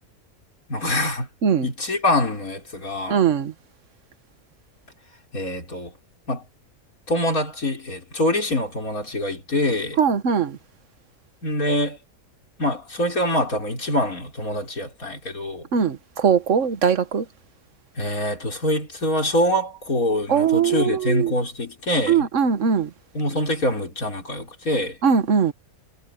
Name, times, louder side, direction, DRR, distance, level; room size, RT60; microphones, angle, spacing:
voice 1, 0.7-1.3 1.6-3.2 5.3-5.9 6.3-6.5 7.1-10.0 11.4-12.0 12.6-15.7 18.0-22.3 23.1-25.0, left 1 dB, 80° left, 5.7 m, -25 dB
voice 2, 3.1-3.5 10.0-10.6 15.7-17.2 20.3-21.3 22.1-22.9 25.0-25.5, right 7 dB, 60° right, 1.5 m, -20 dB
omnidirectional pair, 1.5 m